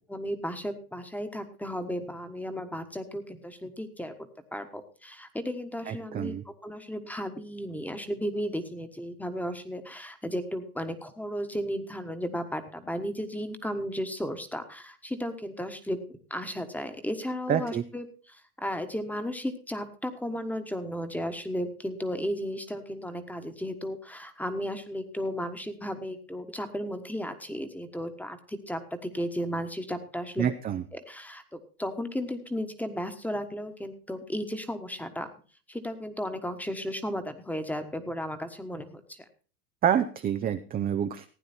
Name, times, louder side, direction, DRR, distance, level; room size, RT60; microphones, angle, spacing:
voice 1, 0.1-30.5 30.9-35.3 35.7-39.2, equal, 5° left, 9 dB, 1.4 m, -34 dB
voice 2, 5.9-6.4 17.5-17.8 30.4-30.8 39.8-41.2, right 9 dB, 20° right, 7 dB, 0.6 m, -27 dB
16.0 x 9.3 x 4.3 m, 0.39 s
hypercardioid pair, 110°, 46 cm